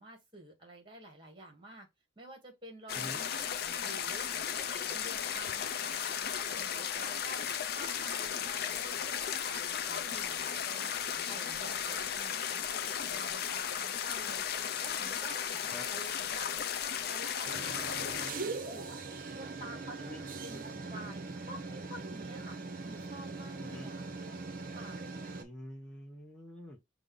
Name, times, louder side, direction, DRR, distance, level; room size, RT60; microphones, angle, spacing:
voice 1, 0.0-1.9 2.2-3.6 3.8-7.4 7.7-10.9 11.3-14.4 14.8-19.0 19.3-22.6 22.8-24.0 24.7-25.0, right 1 dB, 25° right, 1.2 m, -50 dB
sound 1, 2.9-18.3, left 8 dB, 50° left, 0.4 m, -35 dB
sound 2, 17.4-25.4, right 3 dB, 45° right, 0.6 m, -41 dB
voice 2, 25.4-26.8, left 1 dB, 5° left, 0.6 m, -46 dB
5.2 x 2.0 x 3.6 m
head